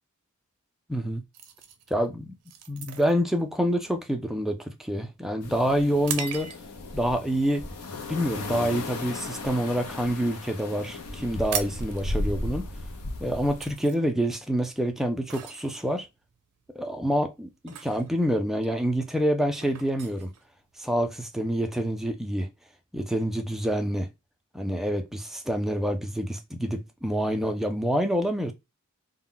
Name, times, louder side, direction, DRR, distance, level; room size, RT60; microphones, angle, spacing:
voice 1, 0.9-1.2 1.9-2.3 2.7-6.5 6.9-7.7 8.1-12.7 13.2-16.1 16.8-20.3 20.8-22.5 22.9-24.1 24.5-28.5, equal, ahead, 0.3 m, -27 dB
sound 1, 1.3-6.9 7.5-7.7 8.2-8.5 8.9-10.0 10.3-10.4 10.6-10.8 11.1-21.1, right 8 dB, 90° right, 0.5 m, -40 dB
sound 2, 5.4-13.8, left 2 dB, 85° left, 0.6 m, -35 dB
2.2 x 2.0 x 3.7 m
head